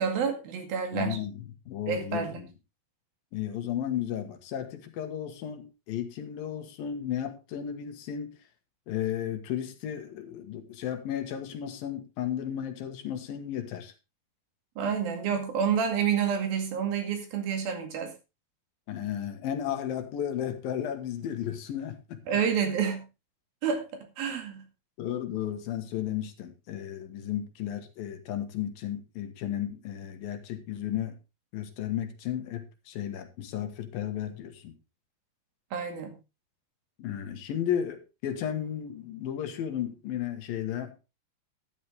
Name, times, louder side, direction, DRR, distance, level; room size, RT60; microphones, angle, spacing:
voice 1, 0.0-1.2 1.9-2.4 14.8-18.1 22.3-23.0 23.6-24.6 35.7-36.2, right 7 dB, 75° right, 4.0 m, -29 dB
voice 2, 0.9-2.5 3.3-8.3 8.9-13.9 18.9-22.2 25.0-31.1 31.5-34.7 37.0-41.0, left 10 dB, 75° left, 3.2 m, -34 dB
13.0 x 11.0 x 3.5 m
omnidirectional pair, 4.2 m